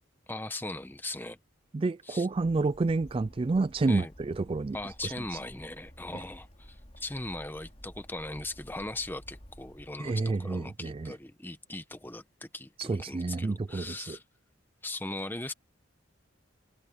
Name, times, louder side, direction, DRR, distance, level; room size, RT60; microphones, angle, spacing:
voice 1, 0.3-1.4 2.0-2.3 3.9-4.1 4.7-14.2 14.8-15.5, left 2 dB, 10° left, 1.1 m, -39 dB
voice 2, 1.7-4.8 5.0-5.1 6.1-6.2 10.0-11.1 12.8-14.2, right 3 dB, 30° right, 0.3 m, -29 dB
Bird, 2.3-9.9, equal, 30° left, 3.9 m, -52 dB
head